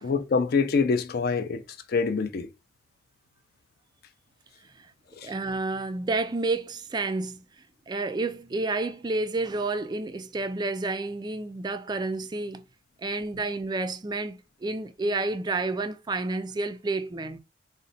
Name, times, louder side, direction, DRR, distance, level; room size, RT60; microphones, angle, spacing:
voice 1, 0.0-1.6 1.9-2.5 5.2-5.3, left 5 dB, 50° left, 0.4 m, -25 dB
voice 2, 5.2-7.4 7.9-12.6 13.0-17.4, right 3 dB, 20° right, 0.3 m, -30 dB
3.9 x 2.1 x 3.9 m
head